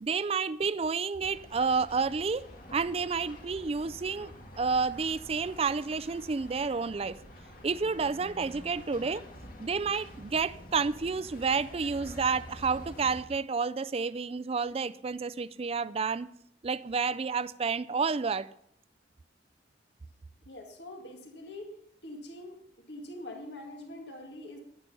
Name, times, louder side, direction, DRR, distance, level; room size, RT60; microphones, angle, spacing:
voice 1, 0.0-4.3 4.6-7.2 7.6-9.2 9.6-16.3 16.6-18.5, right 5 dB, 35° right, 0.4 m, -30 dB
sound 1, 1.2-13.2, equal, 55° left, 2.2 m, -48 dB
voice 2, 20.5-21.7 22.0-22.6 22.9-24.6, left 1 dB, 70° left, 2.0 m, -44 dB
11.0 x 10.5 x 5.5 m
head